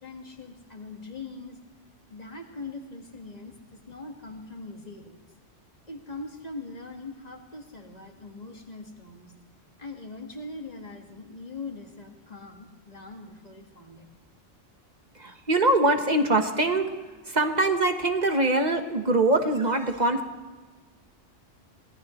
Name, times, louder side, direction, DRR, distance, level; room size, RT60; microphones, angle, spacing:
voice 1, 0.0-1.6 2.1-5.3 5.9-9.3 9.8-14.1, left 3 dB, 35° left, 2 dB, 1.9 m, -41 dB
voice 2, 15.1-16.9 17.2-20.2, right 2 dB, 35° right, 6 dB, 1.3 m, -23 dB
24.5 x 18.0 x 3.2 m, 1.3 s
omnidirectional pair, 1.2 m